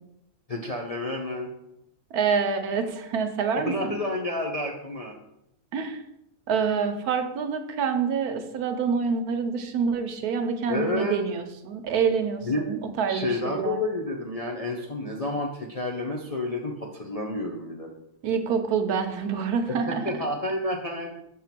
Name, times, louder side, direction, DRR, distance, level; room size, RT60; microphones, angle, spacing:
voice 1, 0.5-1.5 3.5-5.2 10.7-11.2 12.4-12.6 13.1-17.9 19.9-21.1, left 2 dB, 45° left, 0 dB, 0.5 m, -30 dB
voice 2, 2.1-4.0 5.7-6.0 6.5-13.8 18.2-20.0, right 6 dB, 80° right, 7 dB, 1.3 m, -27 dB
7.0 x 3.7 x 5.9 m, 0.83 s
omnidirectional pair, 1.6 m